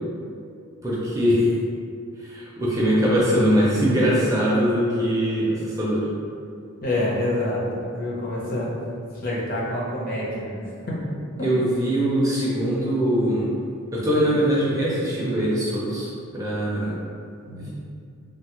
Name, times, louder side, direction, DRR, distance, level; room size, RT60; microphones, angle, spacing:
voice 1, 0.8-1.5 2.2-6.1 11.4-13.5 13.9-17.0 17.6-17.7, equal, 15° right, -7 dB, 0.4 m, -22 dB
voice 2, 6.8-8.7 9.1-10.9 11.4-11.5 17.5-17.7, left 1 dB, 40° left, -6 dB, 0.7 m, -27 dB
3.1 x 2.3 x 2.9 m, 2.4 s
head